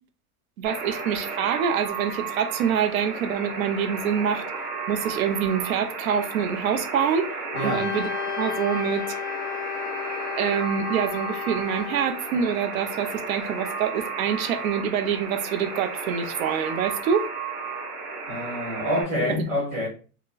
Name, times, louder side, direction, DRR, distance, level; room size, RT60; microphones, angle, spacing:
Alarm, 0.6-19.0, right 4 dB, 40° right, 1.7 m, -33 dB
voice 1, 0.6-4.4 4.9-7.3 7.6-8.1 8.4-9.0 10.4-17.3 19.2-19.5, right 8 dB, 65° right, 0.6 m, -26 dB
Wind instrument woodwind instrument, 7.5-12.3, left 11 dB, 60° left, 0.6 m, -33 dB
voice 2, 7.5-7.9 18.3-19.9, left 1 dB, 5° right, 0.5 m, -27 dB
4.8 x 2.1 x 2.4 m
supercardioid pair, 180°, 45 cm